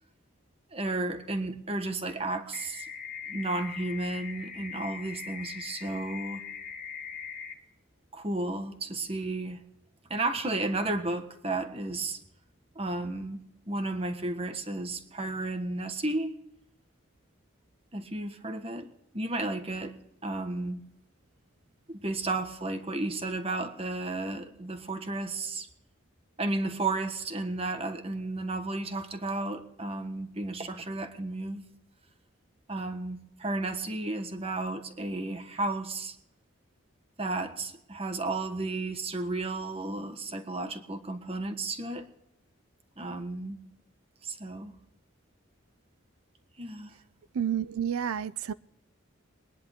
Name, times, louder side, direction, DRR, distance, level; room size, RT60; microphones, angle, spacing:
voice 1, 0.7-2.9 3.3-6.4 8.1-9.6 10.1-12.2 12.7-13.4 13.7-16.3 17.9-18.9 19.1-20.0 20.2-20.8 21.9-25.7 26.4-31.6 32.7-36.2 37.2-42.1 43.0-43.6 44.2-44.7 46.6-46.9, right 2 dB, 25° right, 1.4 m, -33 dB
sound 1, 2.5-7.5, left 6 dB, 30° left, 1.8 m, -41 dB
voice 2, 47.3-48.5, right 8 dB, 90° right, 0.4 m, -30 dB
22.5 x 10.5 x 3.6 m
head